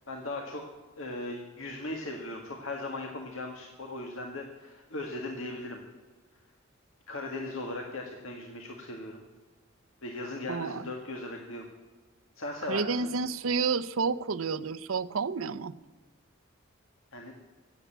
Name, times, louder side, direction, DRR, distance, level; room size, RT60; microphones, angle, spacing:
voice 1, 0.1-0.6 1.0-5.8 7.1-9.2 10.0-11.7 12.4-13.1 17.1-17.3, left 2 dB, 75° left, 2 dB, 1.8 m, -38 dB
voice 2, 10.5-10.9 12.7-15.7, right 4 dB, 80° right, 14 dB, 0.7 m, -30 dB
16.5 x 8.1 x 9.0 m, 1.2 s
head